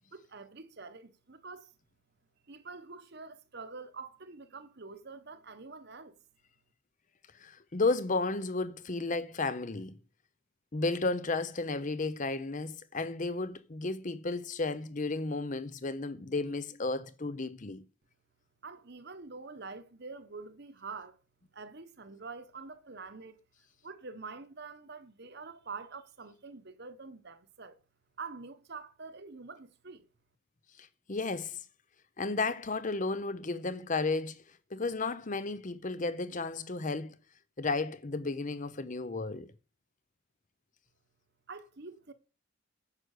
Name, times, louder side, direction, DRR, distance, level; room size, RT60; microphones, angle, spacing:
voice 1, 0.1-1.7 2.5-6.2 18.6-21.2 21.5-23.4 23.8-27.8 28.2-30.0 41.5-42.1, right 4 dB, 50° right, 1.0 m, -46 dB
voice 2, 7.4-10.0 10.7-17.8 30.8-31.6 32.2-34.4 34.7-37.2 37.6-39.5, left 3 dB, 35° left, 0.7 m, -33 dB
9.7 x 6.1 x 6.5 m
head